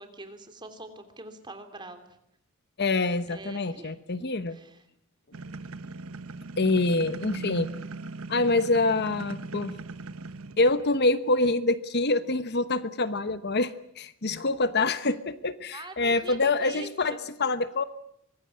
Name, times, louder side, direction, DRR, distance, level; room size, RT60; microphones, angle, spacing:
voice 1, 0.0-2.1 3.3-4.8 5.4-5.8 15.7-17.2, right 2 dB, 20° right, 7 dB, 3.2 m, -45 dB
voice 2, 2.8-4.6 6.6-7.7 8.3-9.7 10.6-17.8, left 2 dB, 50° left, 12 dB, 1.1 m, -26 dB
sound 1, 5.3-11.0, right 3 dB, 90° right, 1.1 m, -39 dB
24.5 x 21.0 x 8.7 m, 0.75 s
head